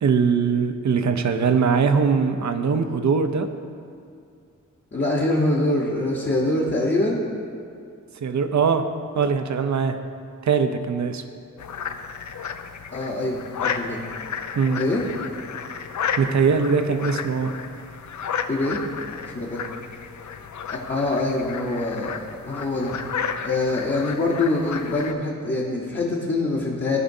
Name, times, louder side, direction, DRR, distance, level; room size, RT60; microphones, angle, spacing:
voice 1, 0.0-3.5 8.2-8.8 9.2-10.0 10.4-11.2 14.6-14.8 16.2-17.5, right 5 dB, 60° right, 8 dB, 0.6 m, -21 dB
voice 2, 4.9-7.2 12.9-14.0 14.8-15.0 18.5-18.9 19.3-19.6 20.7-22.2 22.5-23.0 23.4-27.0, left 2 dB, 35° left, -5 dB, 1.0 m, -24 dB
sound 1, 11.6-25.1, left 6 dB, 65° left, 0.5 m, -33 dB
13.5 x 5.0 x 2.7 m, 2.3 s
wide cardioid pair, 80°, 32 cm